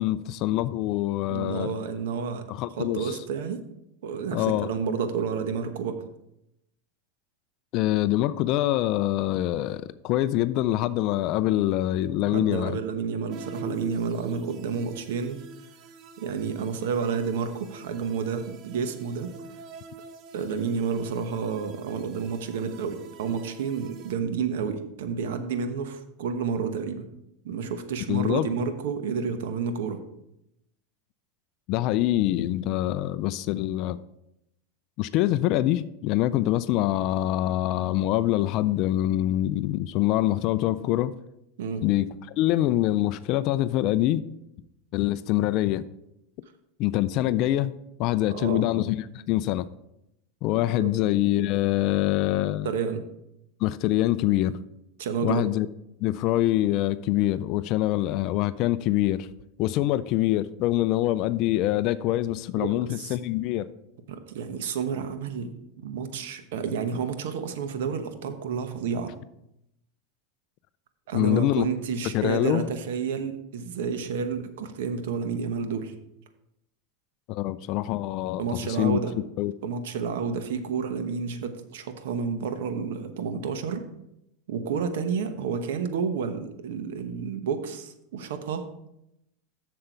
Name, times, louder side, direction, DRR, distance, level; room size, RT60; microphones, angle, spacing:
voice 1, 0.0-1.7 2.5-3.2 4.3-4.7 7.7-12.8 28.1-28.5 31.7-34.0 35.0-41.1 41.8-44.2 44.9-45.8 46.8-47.7 48.0-49.7 50.4-52.7 53.6-54.6 55.2-55.7 56.0-59.3 59.6-63.7 71.1-71.7 72.1-72.7 77.3-79.0 79.4-79.5, left 14 dB, 50° left, 15 dB, 0.3 m, -25 dB
voice 2, 1.3-2.5 2.8-3.6 4.0-6.0 12.2-15.4 16.2-19.3 20.3-27.0 27.4-30.0 41.6-41.8 48.3-48.6 50.8-50.9 52.6-53.0 55.0-55.5 62.6-63.2 64.1-69.1 71.1-76.0 78.4-79.1 79.6-83.8 84.5-88.7, right 6 dB, 80° right, 8 dB, 1.0 m, -30 dB
sound 1, 13.3-24.1, right 2 dB, 45° right, 0.7 m, -45 dB
7.8 x 6.7 x 4.5 m, 0.82 s
supercardioid pair, 130°, 0 cm